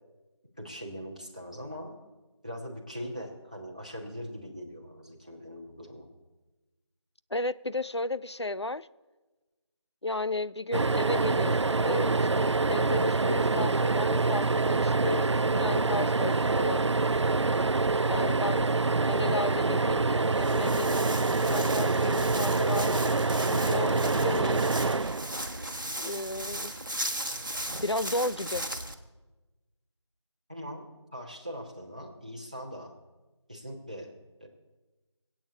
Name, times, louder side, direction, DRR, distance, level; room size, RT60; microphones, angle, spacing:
voice 1, 0.6-1.9 2.4-6.1 18.2-18.4 30.5-32.9 33.5-34.1 34.4-34.5, equal, 15° right, -1 dB, 1.3 m, -41 dB
voice 2, 7.3-8.9 10.0-16.8 18.1-18.7 19.1-21.0 21.4-23.1 23.4-24.7 26.0-26.7 27.8-28.7, left 2 dB, 65° left, 16 dB, 0.6 m, -33 dB
sound 1, 10.7-26.0 27.7-27.8 28.1-28.2, right 3 dB, 75° right, 0.4 m, -26 dB
Walk footsteps, 20.2-28.9, right 1 dB, 45° right, 1.4 m, -37 dB
18.0 x 8.8 x 8.4 m, 1.2 s
figure-of-eight pair, 180°, 15 cm